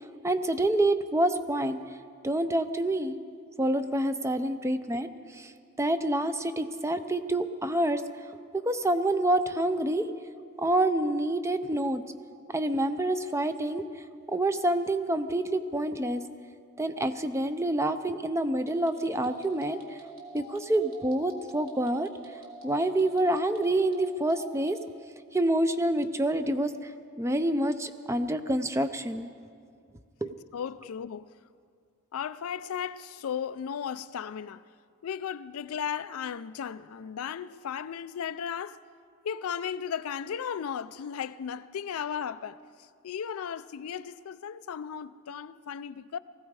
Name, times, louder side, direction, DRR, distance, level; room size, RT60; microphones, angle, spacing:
voice 1, 0.2-1.8 2.2-3.2 3.6-5.1 5.3-5.5 5.8-8.0 8.5-10.0 10.6-12.0 12.5-13.9 14.3-16.2 16.8-19.8 20.3-22.1 22.6-24.8 25.3-26.7 27.2-29.3 30.2-30.3, right 1 dB, 15° right, 0.5 m, -27 dB
sound 1, 18.6-24.9, right 2 dB, 85° right, 2.9 m, -47 dB
voice 2, 30.2-31.3 32.1-34.6 35.0-38.8 39.2-42.6 43.0-46.2, left 8 dB, 75° left, 0.4 m, -35 dB
19.5 x 15.5 x 4.8 m
head